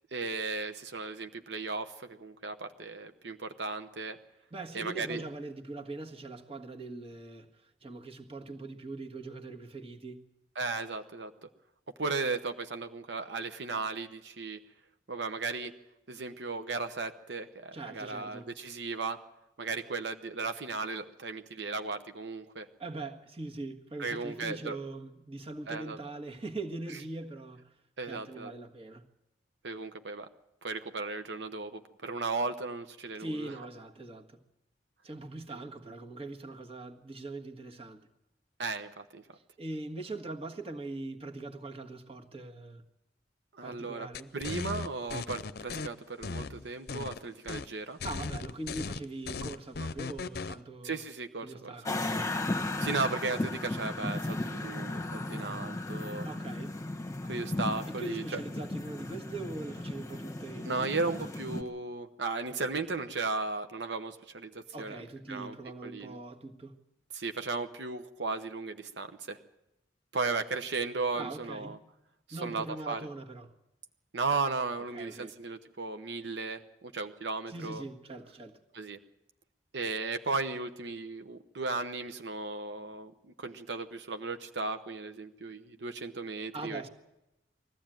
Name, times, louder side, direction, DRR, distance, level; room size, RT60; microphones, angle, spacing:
voice 1, 0.0-4.2 4.7-5.2 10.6-11.5 12.0-14.6 15.1-15.7 16.1-19.2 19.6-22.7 24.0-24.8 25.7-26.0 28.0-28.5 29.6-30.3 30.6-33.5 38.6-39.2 43.5-44.1 44.3-48.0 50.8-51.7 52.8-56.3 57.2-58.4 60.6-65.0 65.3-65.5 65.8-66.2 67.1-69.4 70.1-71.8 72.3-73.1 74.1-77.8 78.7-79.0 79.7-83.1 83.4-86.8, right 3 dB, 80° right, 1.0 m, -35 dB
voice 2, 4.5-10.2 17.7-18.5 22.8-27.6 28.1-29.0 33.2-34.4 35.0-38.0 39.3-42.8 43.6-44.3 48.0-51.0 51.4-52.3 56.2-56.8 57.9-61.3 64.7-66.8 71.1-71.8 72.3-73.5 74.9-75.3 77.5-78.6 86.5-86.9, right 2 dB, 35° right, 1.7 m, -42 dB
sound 1, 44.1-45.9 46.2-47.2 47.5-47.7 48.0-50.6, left 4 dB, 60° left, 0.6 m, -37 dB
sound 2, 51.9-61.6, left 2 dB, 20° left, 1.3 m, -35 dB
21.0 x 15.0 x 9.1 m
head